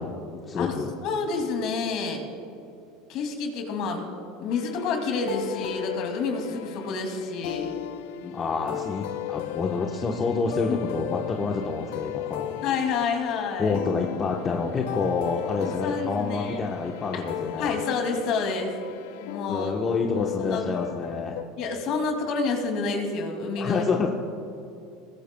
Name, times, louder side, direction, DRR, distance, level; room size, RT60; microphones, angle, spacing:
voice 1, 0.0-0.9 8.2-12.6 13.6-17.8 19.5-21.4 23.6-24.1, left 4 dB, 30° left, 1 dB, 1.1 m, -28 dB
voice 2, 1.0-2.2 3.1-4.1 4.4-7.7 10.7-10.8 12.6-13.8 15.6-16.6 17.1-17.2 17.6-18.7 19.2-19.7 20.4-20.6 21.6-23.9, left 4 dB, 55° left, 4 dB, 2.5 m, -29 dB
sound 1, 4.5-21.4, left 14 dB, 75° left, 0.5 m, -36 dB
21.0 x 15.5 x 2.3 m, 2.7 s
hypercardioid pair, 90°, 0 cm